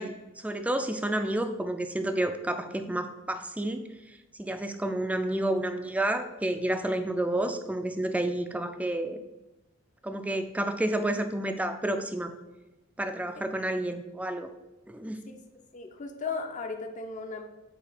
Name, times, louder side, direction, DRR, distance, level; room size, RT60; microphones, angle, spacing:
voice 1, 0.0-3.9 4.4-9.2 10.0-12.3 13.0-14.5 14.9-15.3, right 1 dB, 5° right, 8 dB, 0.4 m, -30 dB
voice 2, 15.7-17.4, left 4 dB, 35° left, 5 dB, 0.6 m, -36 dB
8.3 x 2.8 x 5.0 m, 1.0 s
head